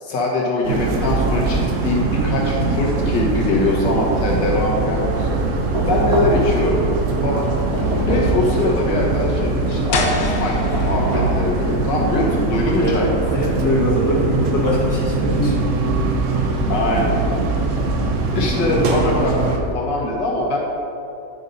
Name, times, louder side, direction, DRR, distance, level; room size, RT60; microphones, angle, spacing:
voice 1, 0.0-5.4 5.8-7.5 8.1-13.1 15.4-15.5 16.7-17.2 18.3-20.6, left 2 dB, 90° left, -3 dB, 2.0 m, -22 dB
sound 1, 0.6-19.6, right 3 dB, 55° right, 1.0 m, -22 dB
Knock, 5.7-6.6 7.7-8.5 10.7-11.5, right 1 dB, 35° right, 1.9 m, -22 dB
sound 2, 9.9-15.6, left 4 dB, 60° left, 0.9 m, -32 dB
voice 2, 13.3-15.5, left 1 dB, 10° left, -5 dB, 1.3 m, -21 dB
9.9 x 5.2 x 4.1 m, 2.7 s
omnidirectional pair, 1.8 m